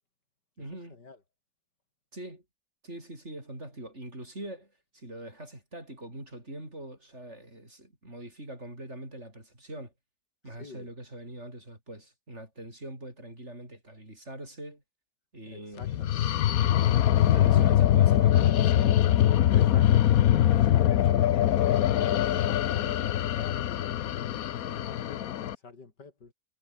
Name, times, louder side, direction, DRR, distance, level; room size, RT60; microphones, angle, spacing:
voice 1, 0.6-1.0 2.1-2.4 2.8-9.9 10.4-14.8 15.3-16.1 17.3-19.1, right 1 dB, 40° right, 8.1 m, -43 dB
voice 2, 10.5-10.9 15.5-16.4 17.2-17.8 19.4-21.3 21.7-26.3, left 4 dB, 75° left, 4.0 m, -47 dB
sound 1, 15.8-25.6, left 11 dB, 60° left, 1.1 m, -23 dB
omnidirectional pair, 1.8 m